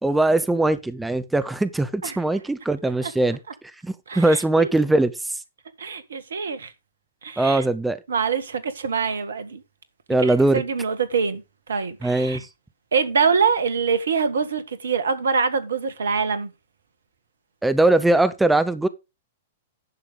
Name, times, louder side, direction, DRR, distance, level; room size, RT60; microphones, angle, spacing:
voice 1, 0.0-3.4 3.8-5.4 7.4-8.0 10.1-10.6 12.0-12.5 17.6-18.9, right 2 dB, 5° right, 0.7 m, -21 dB
voice 2, 4.1-4.7 5.8-6.7 7.2-7.6 8.1-9.6 10.2-11.4 11.7-12.4 12.9-16.5, right 5 dB, 70° right, 1.6 m, -24 dB
11.0 x 6.7 x 4.0 m
figure-of-eight pair, 105°, 0 cm